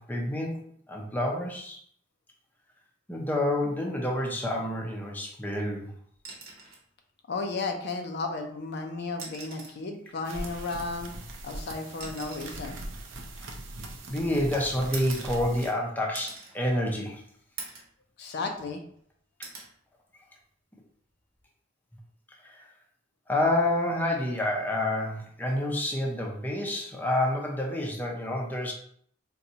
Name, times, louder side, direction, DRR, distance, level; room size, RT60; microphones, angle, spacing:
voice 1, 0.0-1.8 3.1-5.9 14.1-17.2 22.4-22.6 23.3-28.7, left 1 dB, 10° left, -1 dB, 0.5 m, -28 dB
sound 1, 6.2-6.9 8.3-8.4 9.1-9.9 11.0-14.1 14.9-15.8 16.1-16.6 17.0-17.1 17.6-18.0 18.4-19.0 19.4-19.7 21.2-21.4, right 4 dB, 55° right, 0.9 m, -44 dB
voice 2, 7.3-11.1 11.4-12.8 18.2-18.8, left 3 dB, 60° left, 4 dB, 0.4 m, -34 dB
sound 2, 10.2-15.7, right 1 dB, 75° right, 0.6 m, -40 dB
4.0 x 2.2 x 2.7 m, 0.62 s
head